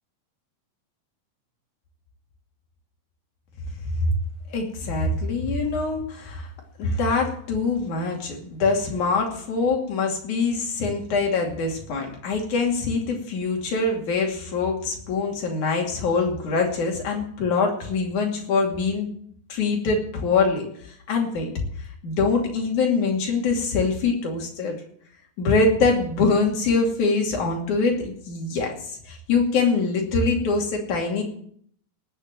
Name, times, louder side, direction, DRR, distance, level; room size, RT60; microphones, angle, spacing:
voice 1, 4.5-6.5 6.8-19.1 19.5-20.7 21.1-21.5 22.0-24.8 25.4-28.8 29.1-31.2, left 4 dB, 60° left, 1 dB, 4.0 m, -24 dB
18.5 x 7.1 x 7.7 m, 0.63 s
omnidirectional pair, 4.0 m